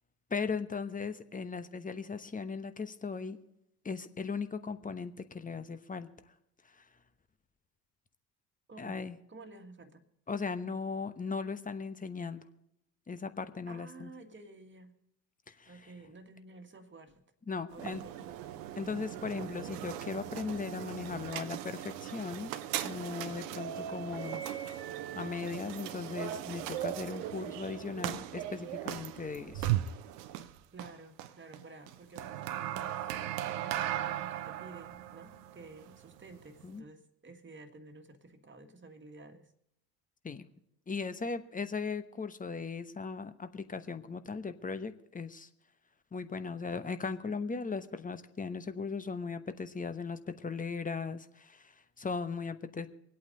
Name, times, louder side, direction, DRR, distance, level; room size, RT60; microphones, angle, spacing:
voice 1, 0.3-3.4 3.8-6.1 6.8-6.9 8.8-9.2 10.3-12.4 13.1-14.1 15.5-15.7 17.5-18.0 18.8-22.5 22.8-24.4 25.1-29.7 36.6-36.8 40.2-40.4 40.9-45.5 46.1-52.9, left 5 dB, 15° left, 11 dB, 1.0 m, -38 dB
voice 2, 8.7-9.0 9.3-10.0 13.7-14.9 15.7-17.2 17.7-18.6 30.7-33.1 33.4-39.5, right 3 dB, 25° right, 7 dB, 1.9 m, -52 dB
sound 1, 17.7-36.8, right 12 dB, 70° right, 0.9 m, -38 dB
26.0 x 8.7 x 3.9 m, 0.80 s
figure-of-eight pair, 60°, 50 cm